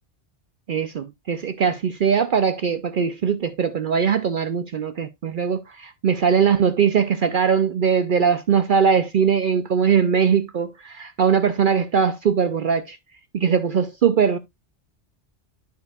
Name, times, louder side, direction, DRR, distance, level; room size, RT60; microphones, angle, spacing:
voice 1, 0.7-13.0 13.3-14.4, right 7 dB, 55° right, 0.6 m, -21 dB
13.0 x 4.7 x 2.3 m
omnidirectional pair, 1.2 m